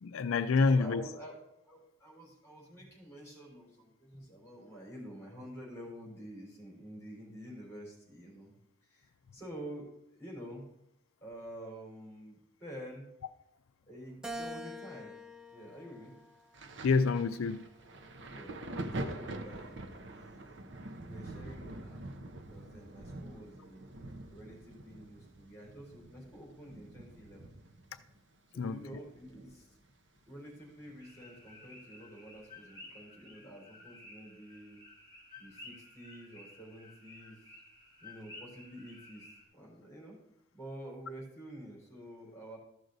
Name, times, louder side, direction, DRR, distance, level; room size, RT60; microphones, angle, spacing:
voice 1, 0.0-1.0 16.8-17.7 28.6-28.8, left 4 dB, 80° left, 0.4 m, -27 dB
voice 2, 0.7-8.5 8.8-10.7 11.2-13.1 13.9-15.2 15.5-16.2 18.3-20.6 21.0-22.0 22.5-23.9 24.3-27.5 28.5-29.8 30.3-34.8 35.4-37.6 38.0-40.2 40.5-42.6, right 1 dB, 15° left, 4.0 m, -49 dB
Keyboard (musical), 14.2-16.7 17.3-18.5, equal, 5° right, 0.4 m, -46 dB
Thunder, 16.5-29.9 30.2-31.5 32.3-32.5, right 1 dB, 60° right, 0.8 m, -45 dB
sound 1, 31.0-39.4, left 2 dB, 20° right, 3.4 m, -54 dB
14.0 x 6.3 x 3.9 m
head